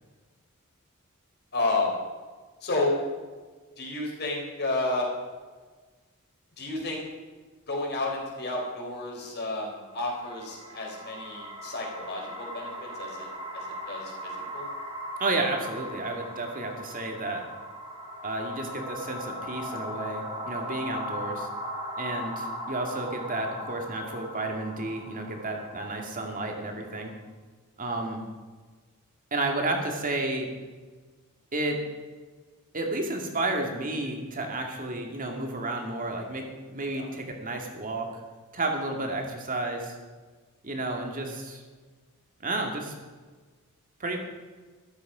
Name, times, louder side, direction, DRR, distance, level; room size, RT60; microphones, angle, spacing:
voice 1, 1.5-1.9 2.6-3.0 3.8-5.1 6.6-7.0 7.7-13.3 13.5-14.7 36.9-37.1, left 2 dB, 50° left, -1 dB, 4.1 m, -31 dB
sound 1, 9.9-27.1, equal, 25° right, 3.0 m, -39 dB
voice 2, 15.2-17.4 18.2-21.5 22.0-27.1 27.8-28.2 29.3-30.5 31.5-31.8 32.7-38.2 38.5-40.0 40.6-41.6 42.4-42.9 44.0-44.2, right 2 dB, 40° right, 2 dB, 2.2 m, -31 dB
13.5 x 12.5 x 5.0 m, 1.4 s
head